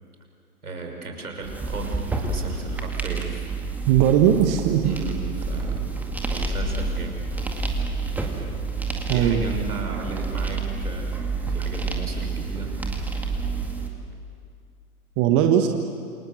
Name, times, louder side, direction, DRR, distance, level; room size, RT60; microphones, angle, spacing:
voice 1, 0.6-3.5 4.8-5.9 6.2-7.5 9.1-12.8, right 3 dB, 70° right, 2 dB, 5.9 m, -35 dB
sound 1, 1.4-13.9, right 3 dB, 5° right, 2.0 m, -29 dB
voice 2, 3.9-4.8 9.1-9.4 15.2-15.7, right 10 dB, 25° right, 5 dB, 1.4 m, -18 dB
28.0 x 27.0 x 7.7 m, 2.2 s
figure-of-eight pair, 120°, 45 cm